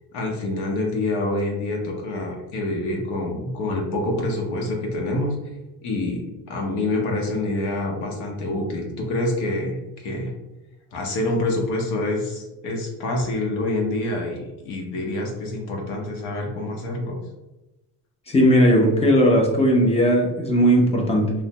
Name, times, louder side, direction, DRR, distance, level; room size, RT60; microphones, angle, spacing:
voice 1, 0.1-5.4 5.8-10.3 10.9-17.2, left 2 dB, 70° left, 0 dB, 0.8 m, -26 dB
voice 2, 18.3-21.3, equal, 15° left, 0 dB, 0.3 m, -17 dB
3.1 x 2.1 x 2.7 m, 1.0 s
cardioid pair, 140°, 42 cm